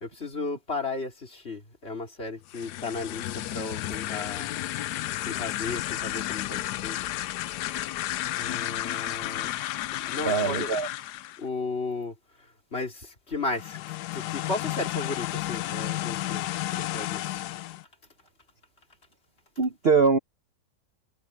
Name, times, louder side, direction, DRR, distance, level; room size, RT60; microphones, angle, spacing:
voice 1, 0.0-4.6 5.2-7.0 8.3-9.5 9.9-10.7 11.4-13.8 14.1-16.5 16.7-17.4, left 3 dB, 35° left, 3.1 m, -35 dB
sound 1, 2.4-11.4 13.5-17.8, left 15 dB, 75° left, 1.1 m, -32 dB
voice 2, 10.2-10.9 19.6-20.2, right 5 dB, 45° right, 1.0 m, -22 dB
omnidirectional pair, 1.9 m